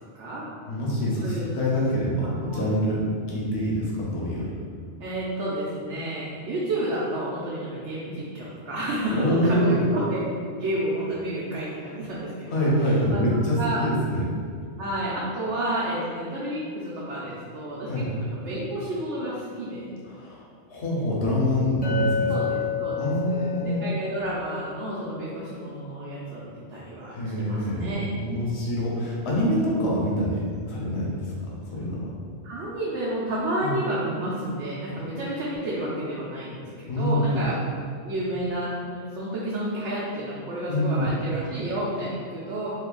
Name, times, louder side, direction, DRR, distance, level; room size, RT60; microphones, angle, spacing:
voice 1, 0.1-0.5 1.2-1.5 2.2-2.7 5.0-10.2 10.6-13.8 14.8-19.9 22.3-28.1 32.4-37.6 38.0-42.7, right 1 dB, 90° right, -7 dB, 0.9 m, -31 dB
voice 2, 0.7-3.0 3.3-4.5 9.1-9.8 12.5-14.2 17.9-18.1 20.0-20.4 20.7-22.3 23.0-23.8 27.1-32.1 33.6-33.7 36.9-37.4 40.7-41.1, equal, 70° left, -4 dB, 1.0 m, -25 dB
Chink clink, 21.8-26.1, left 6 dB, 15° left, 0.4 m, -31 dB
2.7 x 2.5 x 3.7 m, 2.2 s
omnidirectional pair, 1.2 m